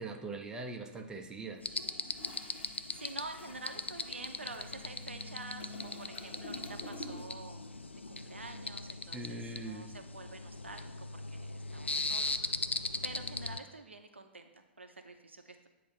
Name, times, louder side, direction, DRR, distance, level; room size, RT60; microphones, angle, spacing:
voice 1, 0.0-1.6 9.1-9.9, right 2 dB, 10° right, 2 dB, 0.7 m, -41 dB
sound 1, 1.6-13.6, left 3 dB, 85° left, 0.4 m, -39 dB
Toilet flush, 1.6-7.5 7.8-8.1, left 2 dB, 55° left, 1.4 m, -50 dB
voice 2, 2.5-7.6 8.1-12.7 13.0-15.7, right 3 dB, 80° right, 6 dB, 0.6 m, -48 dB
8.5 x 2.9 x 5.3 m, 1.1 s
figure-of-eight pair, 105°, 6 cm